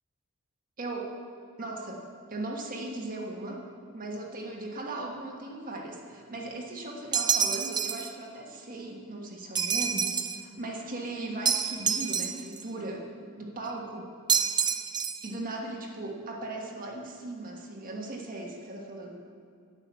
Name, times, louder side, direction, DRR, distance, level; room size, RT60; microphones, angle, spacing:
voice 1, 0.8-1.1 1.6-2.0 2.3-3.6 3.9-13.1 13.4-14.1 15.2-19.2, right 2 dB, 40° right, -1 dB, 1.4 m, -38 dB
sound 1, 7.1-8.1 9.6-10.4 11.5-12.6 14.3-15.3, right 7 dB, 20° right, 0.4 m, -27 dB
10.0 x 7.1 x 8.4 m, 2.2 s
head